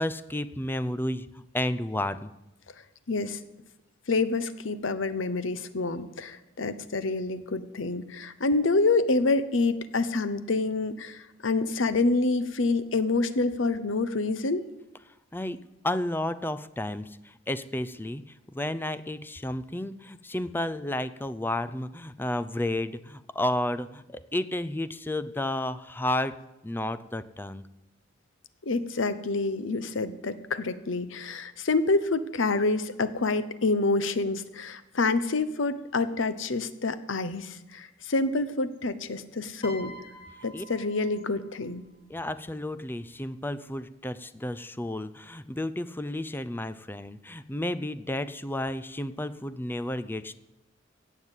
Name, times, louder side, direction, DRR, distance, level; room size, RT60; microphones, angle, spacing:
voice 1, 0.0-2.3 15.3-15.6 15.8-18.2 18.5-24.0 24.3-26.3 26.6-27.6 40.5-40.6 42.1-50.3, left 1 dB, 10° left, 14 dB, 0.5 m, -32 dB
voice 2, 3.1-3.4 4.1-14.6 28.6-40.0 40.4-41.9, left 3 dB, 70° left, 13 dB, 0.9 m, -27 dB
Piano, 39.6-42.0 43.0-43.3, equal, 25° left, 1.9 m, -46 dB
16.5 x 7.3 x 8.2 m, 0.94 s
head